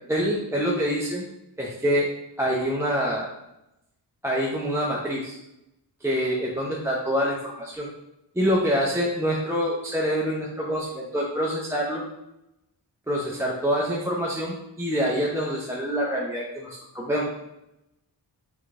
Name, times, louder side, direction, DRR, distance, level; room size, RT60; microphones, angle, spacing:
voice 1, 0.1-1.2 1.6-2.1 2.4-3.3 4.2-5.4 6.0-7.9 8.3-12.0 13.1-17.2, equal, 5° right, -4 dB, 0.5 m, -26 dB
3.7 x 3.4 x 3.6 m, 0.89 s
wide cardioid pair, 100°, 43 cm